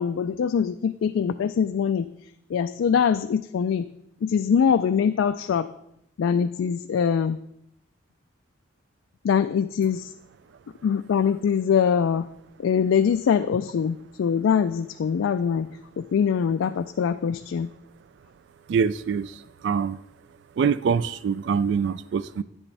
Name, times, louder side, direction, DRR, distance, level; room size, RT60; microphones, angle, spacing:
voice 1, 0.0-3.9 4.2-5.7 6.2-7.4 9.2-10.1 10.8-12.3 12.6-17.7, left 7 dB, 90° left, 9 dB, 0.3 m, -23 dB
voice 2, 18.7-20.0 20.6-22.4, right 6 dB, 65° right, 17 dB, 0.3 m, -24 dB
9.4 x 8.4 x 3.3 m, 0.78 s
head